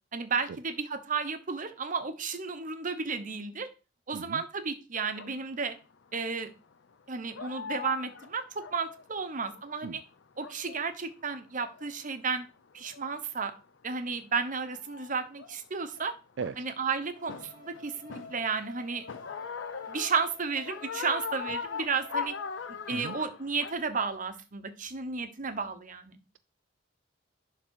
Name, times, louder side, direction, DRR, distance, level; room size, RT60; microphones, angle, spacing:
voice 1, 0.1-3.7 4.1-5.7 6.1-6.5 7.1-10.0 10.4-12.5 12.7-13.5 13.8-16.1 16.6-19.0 19.9-22.3 22.9-26.2, right 5 dB, 45° right, 10 dB, 1.0 m, -33 dB
voice 2, 4.1-4.4 9.8-10.0 16.4-16.6 22.9-23.2, right 6 dB, 75° right, 12 dB, 0.4 m, -37 dB
sound 1, 5.2-5.3 6.2-6.5 6.9-7.0 7.3-9.9 10.2-10.9 11.3-12.1 12.8-13.2 14.0-14.1 14.3-16.0 16.4-16.8 17.3-18.7 19.1-23.7, left 6 dB, 80° left, 0.6 m, -40 dB
sound 2, 17.1-23.1, left 3 dB, 25° left, 2.5 m, -51 dB
11.0 x 3.8 x 4.7 m, 0.32 s
head